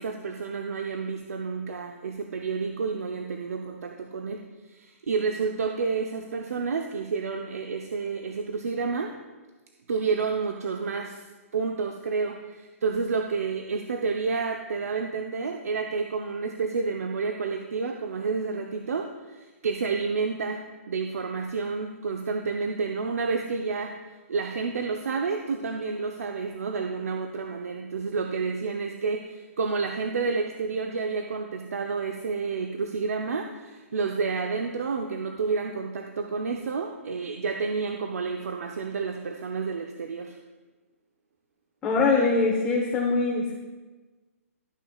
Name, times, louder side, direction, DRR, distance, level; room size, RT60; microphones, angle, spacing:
voice 1, 0.0-9.1 9.9-11.3 11.5-24.0 24.3-40.4, right 4 dB, 80° right, 4 dB, 0.7 m, -30 dB
voice 2, 41.8-43.5, left 3 dB, 15° left, -4 dB, 1.1 m, -23 dB
12.5 x 9.1 x 2.4 m, 1.3 s
hypercardioid pair, 150°, 8 cm